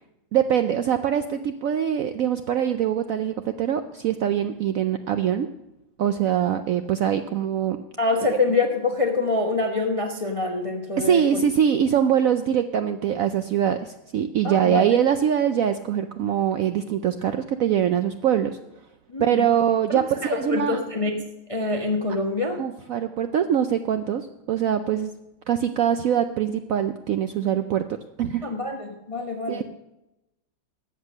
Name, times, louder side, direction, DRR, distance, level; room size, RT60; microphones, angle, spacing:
voice 1, 0.3-5.5 6.0-7.8 11.0-18.6 19.2-20.8 22.6-25.1 25.5-27.8 28.2-28.5 29.5-29.6, right 9 dB, 90° right, 8 dB, 0.7 m, -23 dB
voice 2, 8.0-11.4 14.4-14.8 19.1-19.5 19.9-21.2 21.5-22.6 28.4-29.6, left 3 dB, 25° left, 3 dB, 0.7 m, -25 dB
13.5 x 8.3 x 6.4 m, 0.93 s
omnidirectional pair, 2.1 m